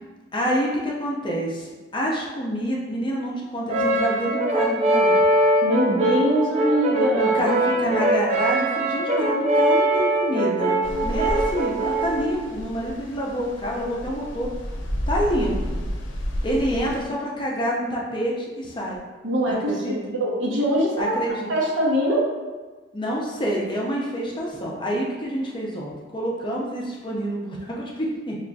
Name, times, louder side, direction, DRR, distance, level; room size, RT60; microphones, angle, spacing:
voice 1, 0.3-5.2 7.1-14.5 15.1-15.8 16.4-19.0 19.5-20.0 21.0-21.5 22.9-28.4, equal, 25° left, -3 dB, 0.5 m, -27 dB
Brass instrument, 3.7-12.3, right 1 dB, 35° right, 0.5 m, -22 dB
voice 2, 5.6-7.4 19.2-21.1 21.5-22.3, equal, 90° right, -3 dB, 0.8 m, -22 dB
sound 1, 10.8-17.1, equal, 85° left, 0.6 m, -31 dB
5.3 x 2.4 x 2.3 m, 1.3 s
head